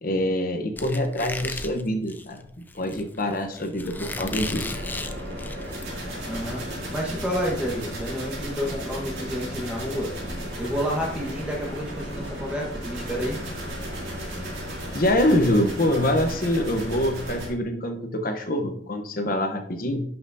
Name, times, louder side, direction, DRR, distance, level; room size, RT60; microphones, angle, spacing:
voice 1, 0.0-2.4 2.7-4.8 14.9-20.0, left 1 dB, 50° left, 6 dB, 1.0 m, -25 dB
Squeak, 0.8-5.8, left 2 dB, 10° left, 0.4 m, -35 dB
sound 1, 3.9-17.5, equal, 60° right, 3.6 m, -34 dB
voice 2, 6.3-10.1 10.6-13.4, equal, 5° right, -3 dB, 1.5 m, -30 dB
11.0 x 5.8 x 2.8 m, 0.64 s
head